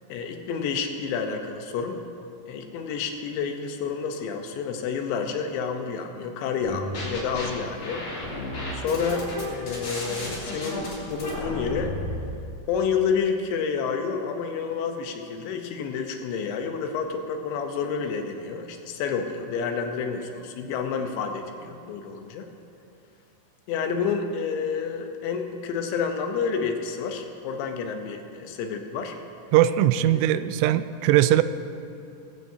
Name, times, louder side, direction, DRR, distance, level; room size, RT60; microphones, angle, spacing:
voice 1, 0.1-2.0 2.5-8.4 8.7-11.9 12.7-22.5 23.7-29.2 30.0-30.2, left 6 dB, 80° left, 4 dB, 3.1 m, -29 dB
sound 1, 6.6-7.5 7.8-12.2, left 1 dB, 45° left, 4.2 m, -33 dB
voice 2, 29.5-31.4, right 13 dB, 90° right, 12 dB, 3.0 m, -20 dB
21.0 x 15.5 x 2.8 m, 2.6 s
omnidirectional pair, 5.4 m